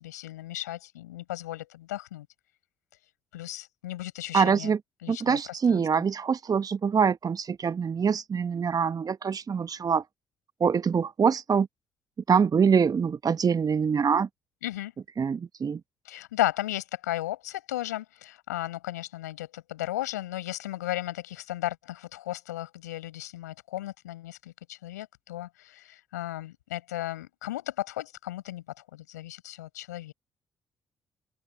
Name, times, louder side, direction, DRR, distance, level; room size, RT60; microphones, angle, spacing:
voice 1, 0.0-2.3 3.3-4.7 5.0-5.8 14.6-14.9 16.0-30.1, left 15 dB, 85° left, 6.7 m, -35 dB
voice 2, 4.3-4.8 5.1-10.0 10.6-11.7 12.3-14.3 15.2-15.8, right 6 dB, 45° right, 1.3 m, -24 dB
open air
figure-of-eight pair, 40°, 9 cm